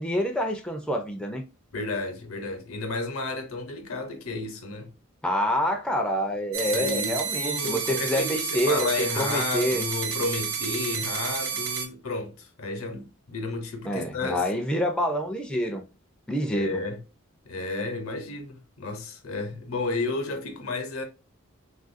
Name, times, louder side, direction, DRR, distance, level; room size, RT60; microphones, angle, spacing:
voice 1, 0.0-1.4 5.2-8.9 9.2-9.8 13.9-15.8 16.3-16.8, equal, 5° left, 0.4 m, -27 dB
voice 2, 1.7-4.9 6.6-14.4 16.5-17.0 17.5-21.0, left 3 dB, 85° left, 0.8 m, -32 dB
sound 1, 6.5-11.9, right 6 dB, 85° right, 0.7 m, -30 dB
3.4 x 2.4 x 2.5 m
head